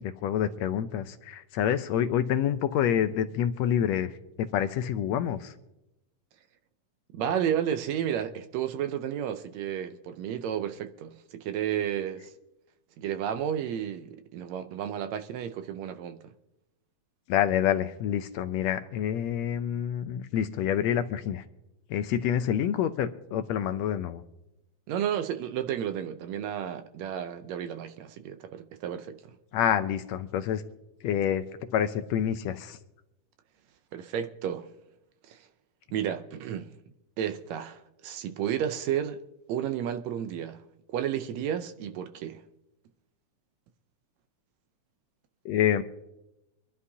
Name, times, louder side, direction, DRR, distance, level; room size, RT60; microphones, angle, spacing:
voice 1, 0.0-5.5 17.3-21.4 21.9-24.2 29.5-30.6 31.0-31.5 31.7-32.8 45.4-45.8, left 9 dB, 75° left, 1.7 m, -27 dB
voice 2, 7.1-12.3 13.0-16.3 24.9-29.3 33.9-34.7 35.2-35.4 35.9-36.7 37.2-39.2 39.5-40.6 40.9-42.4, right 9 dB, 75° right, 1.8 m, -32 dB
25.0 x 11.0 x 2.8 m
omnidirectional pair, 3.4 m